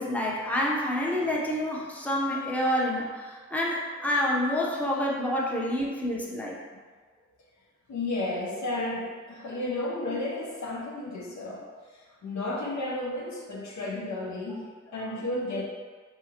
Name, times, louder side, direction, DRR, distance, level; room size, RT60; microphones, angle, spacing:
voice 1, 0.0-6.6, left 1 dB, 5° left, -4 dB, 0.6 m, -28 dB
voice 2, 7.9-11.7 11.9-15.6, left 2 dB, 75° left, -3 dB, 0.6 m, -33 dB
2.7 x 2.4 x 2.8 m, 1.5 s
cardioid pair, 40°, 29 cm